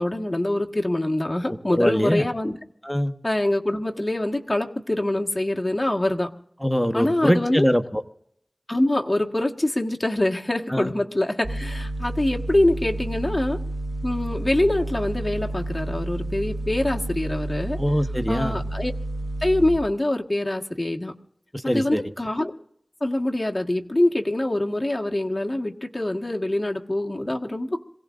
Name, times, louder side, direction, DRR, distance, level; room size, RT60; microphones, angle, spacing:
voice 1, 0.0-2.6 3.2-6.3 6.9-7.7 8.7-13.6 14.0-17.8 18.3-18.9 19.4-21.1 21.7-22.5 23.0-27.8, left 1 dB, 30° left, 2 dB, 1.6 m, -24 dB
voice 2, 1.7-2.3 2.8-3.1 6.6-8.0 10.7-10.9 17.8-18.6 21.7-22.0, equal, 5° left, 6 dB, 1.2 m, -22 dB
sound 1, 11.4-19.8, right 1 dB, 50° right, 2.0 m, -30 dB
26.5 x 17.5 x 2.6 m, 0.71 s
wide cardioid pair, 50°, 0 cm